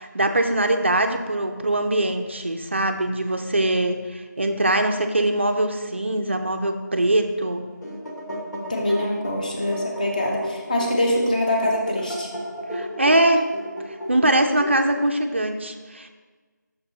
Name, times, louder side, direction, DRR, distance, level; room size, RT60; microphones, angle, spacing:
voice 1, 0.0-7.6 12.7-13.5 14.1-16.1, right 1 dB, 35° right, 6 dB, 0.4 m, -22 dB
sound 1, 7.6-15.2, equal, 60° left, 1.2 m, -34 dB
voice 2, 8.7-12.3, left 1 dB, 25° left, -1 dB, 0.8 m, -24 dB
6.3 x 4.7 x 4.1 m, 1.4 s
figure-of-eight pair, 170°, 10 cm